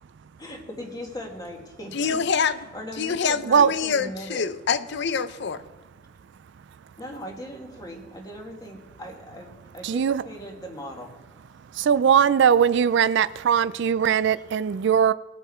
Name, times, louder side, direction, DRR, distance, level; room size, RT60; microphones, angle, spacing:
voice 1, 0.4-4.4 7.0-11.1, equal, 20° left, 1.9 m, -39 dB
voice 2, 1.9-2.6 3.0-5.6, left 6 dB, 60° left, 0.6 m, -26 dB
voice 3, 9.8-10.2 11.7-15.1, right 7 dB, 60° right, 0.4 m, -20 dB
21.0 x 7.1 x 4.3 m
head